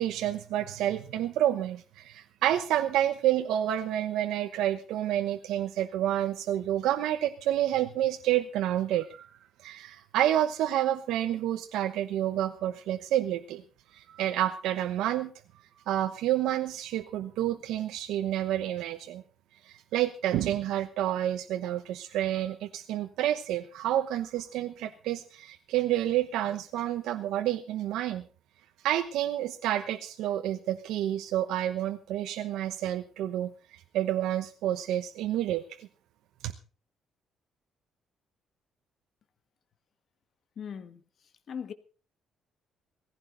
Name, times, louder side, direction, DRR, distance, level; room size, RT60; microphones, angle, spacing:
voice 1, 0.0-9.3 9.6-13.6 13.9-15.3 15.9-19.2 19.6-28.2 28.8-35.9, right 12 dB, 90° right, 1.0 m, -29 dB
voice 2, 40.5-41.0 41.5-41.7, left 7 dB, 45° left, 1.5 m, -38 dB
18.0 x 15.5 x 4.0 m
cardioid pair, 140°, 0 cm